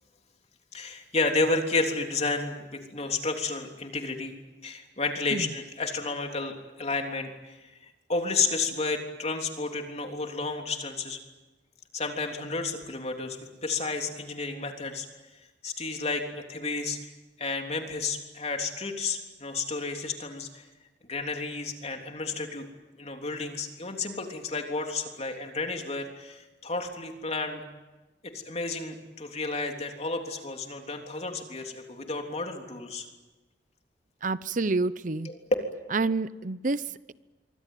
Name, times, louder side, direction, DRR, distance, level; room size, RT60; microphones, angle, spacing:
voice 1, 0.7-4.3 4.6-11.2 11.9-15.1 15.6-17.0 17.4-20.6 21.0-22.7 23.0-27.6 28.2-33.1, left 3 dB, 40° left, 3 dB, 3.4 m, -31 dB
voice 2, 34.2-35.3 35.9-37.1, right 3 dB, 50° right, 16 dB, 0.8 m, -28 dB
26.0 x 24.0 x 9.3 m, 1.2 s
head